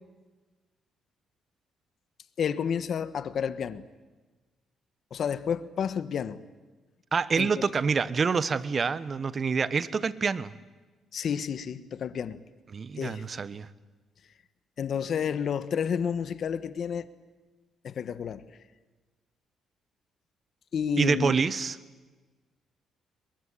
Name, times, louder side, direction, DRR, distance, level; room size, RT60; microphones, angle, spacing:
voice 1, 2.4-3.8 5.1-6.4 7.4-7.5 11.1-12.4 13.0-13.2 14.8-17.1 17.8-18.4 20.7-21.4, left 7 dB, 60° left, 1.3 m, -30 dB
voice 2, 7.1-10.5 12.7-13.7 21.0-21.8, right 5 dB, 40° right, 1.2 m, -27 dB
22.5 x 21.5 x 9.9 m
cardioid pair, 90°, 0 cm